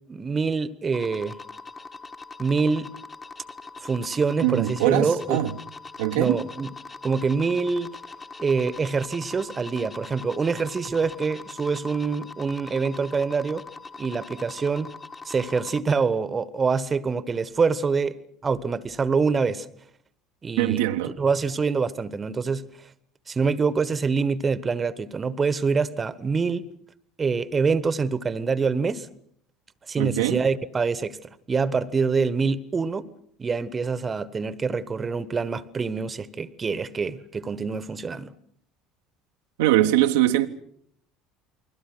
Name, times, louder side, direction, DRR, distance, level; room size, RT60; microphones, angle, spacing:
voice 1, 0.1-1.3 2.4-2.9 3.8-5.4 6.1-6.7 7.0-7.9 8.4-13.6 14.0-14.9 15.2-19.7 20.4-20.8 21.2-22.6 23.3-26.7 27.2-29.1 29.9-31.2 31.5-33.1 33.4-38.3, right 5 dB, 25° right, 1.3 m, -25 dB
sound 1, 0.9-15.8, left 4 dB, 25° left, 1.8 m, -42 dB
voice 2, 4.4-5.5 6.0-6.4 20.6-21.1 30.0-30.4 39.6-40.5, right 14 dB, 65° right, 1.1 m, -22 dB
29.5 x 22.0 x 6.1 m
figure-of-eight pair, 65°, 0 cm